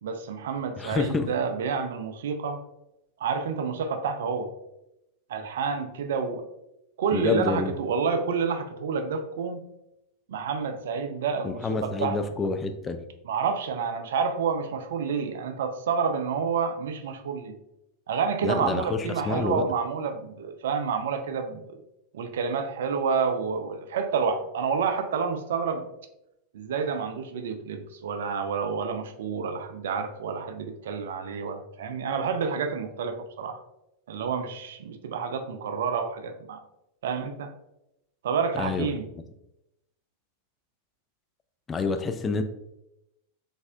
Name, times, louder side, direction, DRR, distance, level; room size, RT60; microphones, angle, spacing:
voice 1, 0.0-2.6 3.2-4.5 5.3-6.5 7.0-9.6 10.3-12.2 13.2-17.6 18.1-21.8 22.1-25.9 26.5-33.6 34.1-36.6 37.0-37.5 38.2-39.0, right 5 dB, 60° right, 0.4 m, -29 dB
voice 2, 0.8-1.3 7.1-7.8 11.4-13.0 18.4-19.6 38.6-38.9 41.7-42.4, left 4 dB, 20° left, 0.3 m, -28 dB
4.0 x 3.4 x 2.5 m
figure-of-eight pair, 90°, 0 cm